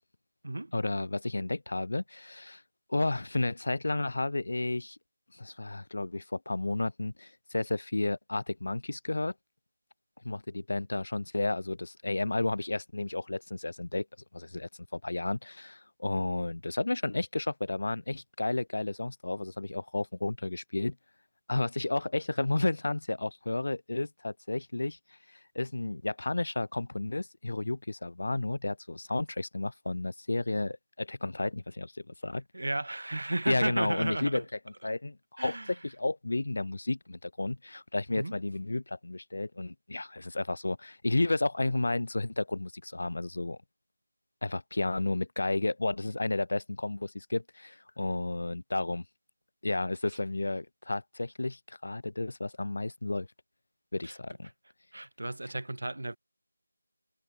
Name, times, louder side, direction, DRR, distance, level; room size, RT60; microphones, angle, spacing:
voice 1, 0.7-2.6 2.9-5.0 5.3-9.3 10.2-14.0 14.3-20.9 21.5-25.0 25.5-32.4 33.5-34.4 34.8-35.6 35.8-43.6 44.4-49.0 49.6-53.3 53.9-54.5, left 2 dB, 55° left, 3.2 m, -32 dB
voice 2, 32.5-34.4 35.4-35.7 38.1-38.3 54.0-54.2 54.9-56.2, right 2 dB, 70° right, 7.2 m, -33 dB
figure-of-eight pair, 175°, 0 cm